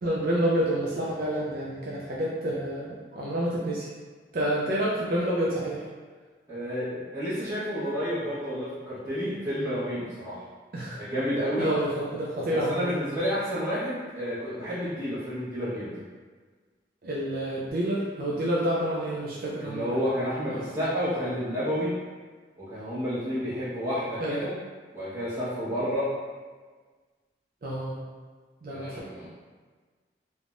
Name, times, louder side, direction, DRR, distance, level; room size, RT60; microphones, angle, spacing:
voice 1, 0.0-3.9 4.3-5.8 10.7-11.0 11.6-12.9 17.0-20.0 20.5-20.8 24.2-24.4 27.6-28.0 28.6-28.9, right 1 dB, 55° right, -6 dB, 0.4 m, -28 dB
voice 2, 6.5-10.4 10.9-11.7 12.5-16.0 19.6-22.0 22.6-24.5 24.9-26.2 28.7-29.3, equal, 15° right, -12 dB, 1.0 m, -30 dB
3.3 x 2.1 x 2.5 m, 1.5 s
head